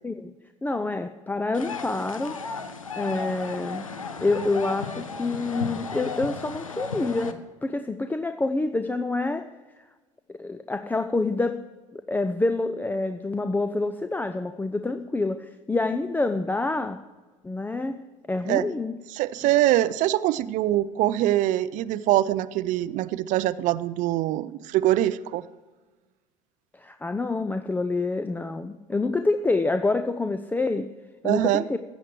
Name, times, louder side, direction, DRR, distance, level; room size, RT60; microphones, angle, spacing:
voice 1, 0.6-2.4 3.0-3.9 4.2-9.5 10.3-11.7 11.9-17.0 17.4-18.9 26.7-30.9 31.2-31.8, left 3 dB, 10° left, 10 dB, 0.6 m, -27 dB
sound 1, 1.5-7.3, left 5 dB, 90° left, 0.7 m, -35 dB
voice 2, 19.1-25.4 31.2-31.6, right 14 dB, 50° right, 15 dB, 0.5 m, -23 dB
14.0 x 8.3 x 4.7 m, 1.3 s
figure-of-eight pair, 65°, 17 cm